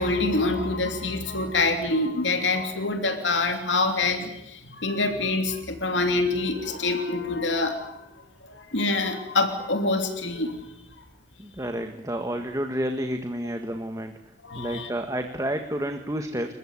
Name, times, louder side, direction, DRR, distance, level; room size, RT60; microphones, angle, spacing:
voice 1, 0.0-8.0 8.4-10.7 14.4-14.9, left 3 dB, 90° left, 5 dB, 3.0 m, -26 dB
voice 2, 11.4-14.2 14.6-16.5, right 1 dB, 20° right, 6 dB, 1.8 m, -30 dB
30.0 x 15.0 x 9.8 m, 0.86 s
head